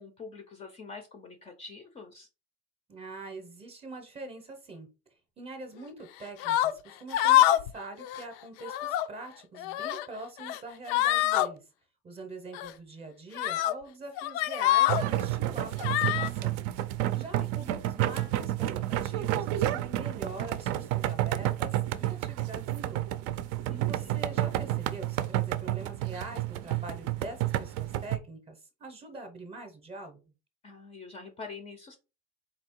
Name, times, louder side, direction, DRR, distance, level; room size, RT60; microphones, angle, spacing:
voice 1, 0.0-2.3 17.2-17.3 23.7-24.2 30.6-32.0, left 4 dB, 20° left, 6 dB, 0.5 m, -45 dB
voice 2, 2.9-4.9 5.4-11.6 12.0-16.6 17.2-23.0 23.5-30.2, right 2 dB, 20° right, 6 dB, 0.7 m, -44 dB
sound 1, 6.4-6.7 7.1-7.7 8.0-8.2 8.6-9.1 9.6-10.1 10.4-10.6 10.9-11.5 12.5-12.7 13.3-13.7 14.2-15.0 15.8-16.3, left 14 dB, 90° left, 0.6 m, -25 dB
sound 2, 14.9-28.2, right 14 dB, 60° right, 0.5 m, -30 dB
4.2 x 2.8 x 4.4 m, 0.30 s
cardioid pair, 165°, 29 cm